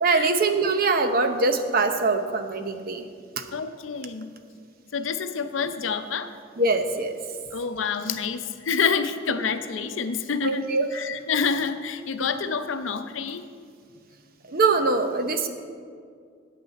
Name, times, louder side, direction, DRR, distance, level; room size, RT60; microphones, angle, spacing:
voice 1, 0.0-3.0 3.4-3.5 6.6-7.1 10.4-10.9 12.2-12.3 14.5-15.5, right 3 dB, 50° right, 7 dB, 0.8 m, -23 dB
voice 2, 3.5-4.3 4.9-6.3 7.5-13.4, left 5 dB, 75° left, 9 dB, 0.6 m, -28 dB
13.5 x 8.6 x 4.1 m, 2.2 s
head